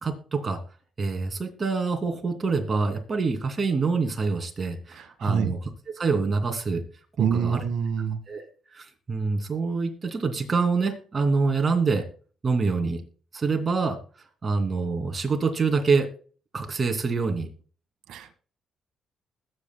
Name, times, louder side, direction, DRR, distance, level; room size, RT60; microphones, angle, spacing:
voice 1, 0.0-0.6 1.0-5.7 5.9-6.8 7.2-7.6 8.3-8.4 8.7-12.0 12.4-13.0 13.3-14.0 14.4-16.1 16.5-17.5, right 4 dB, 35° right, 4 dB, 2.6 m, -26 dB
voice 2, 4.9-5.5 7.2-8.2 18.1-18.3, right 7 dB, 80° right, 7 dB, 1.4 m, -26 dB
20.5 x 8.0 x 2.2 m, 0.40 s
cardioid pair, 90°, 0 cm